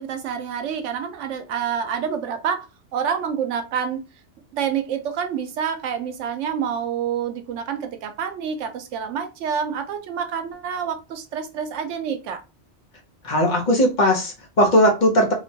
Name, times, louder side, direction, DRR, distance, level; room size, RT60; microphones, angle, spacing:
voice 1, 0.0-2.7 2.9-4.0 4.5-12.4, right 7 dB, 85° right, 0.9 m, -27 dB
voice 2, 13.2-15.3, equal, 45° left, 0.7 m, -18 dB
2.8 x 2.1 x 2.6 m
omnidirectional pair, 1.2 m